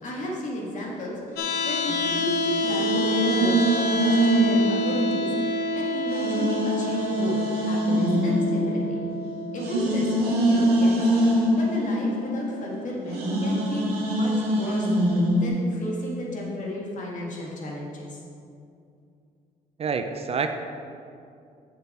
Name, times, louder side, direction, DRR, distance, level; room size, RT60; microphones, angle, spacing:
voice 1, 0.0-3.6 4.0-9.1 9.5-18.2, left 1 dB, 55° left, -3 dB, 1.9 m, -33 dB
sound 1, 1.4-13.4, left 1 dB, 80° left, 0.8 m, -30 dB
sound 2, 1.9-5.7 6.1-15.5, right 1 dB, 80° right, 1.6 m, -24 dB
voice 2, 19.8-20.5, right 5 dB, 40° right, 7 dB, 0.5 m, -27 dB
6.7 x 6.5 x 4.3 m, 2.5 s
cardioid pair, 100°, 16 cm